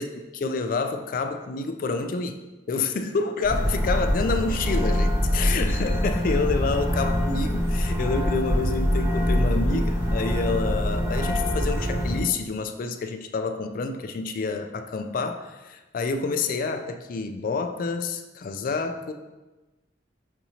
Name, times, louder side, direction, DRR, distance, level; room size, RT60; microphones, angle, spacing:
voice 1, 0.0-2.3 2.7-19.1, left 4 dB, 50° left, 7 dB, 0.3 m, -28 dB
sound 1, 3.4-12.2, equal, 15° right, 0.8 m, -24 dB
5.9 x 2.8 x 2.7 m, 1.1 s
head